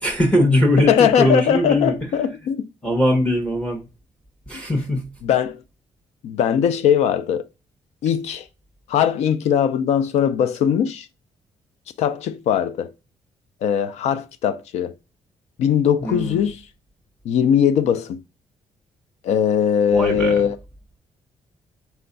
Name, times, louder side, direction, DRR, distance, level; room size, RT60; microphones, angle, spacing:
voice 1, 0.0-1.9 2.8-3.8 4.5-5.1 16.0-16.5 19.9-20.5, left 1 dB, 10° left, 0.8 m, -20 dB
voice 2, 0.9-2.7 5.2-5.6 6.2-7.5 8.0-8.4 8.9-11.1 12.0-12.9 13.6-14.9 15.6-16.6 17.3-18.2 19.2-20.6, left 8 dB, 80° left, 0.4 m, -20 dB
4.3 x 2.3 x 3.8 m
cardioid pair, 155°, 11 cm